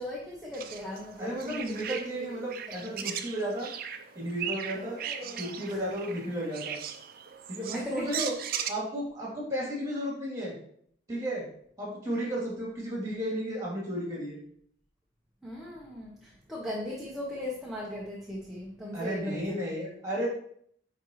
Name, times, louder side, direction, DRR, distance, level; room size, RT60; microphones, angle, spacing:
voice 1, 0.0-2.0 2.7-3.0 4.7-5.8 7.7-8.2 15.4-19.6, left 1 dB, ahead, -5 dB, 0.9 m, -38 dB
sound 1, 0.5-8.7, right 8 dB, 50° right, 0.5 m, -38 dB
voice 2, 1.2-3.7 4.1-5.0 5.3-6.8 7.5-8.3 8.7-10.5 11.1-11.4 11.8-14.4 18.9-20.3, equal, 15° right, -5 dB, 2.7 m, -33 dB
9.8 x 4.0 x 3.1 m, 0.64 s
head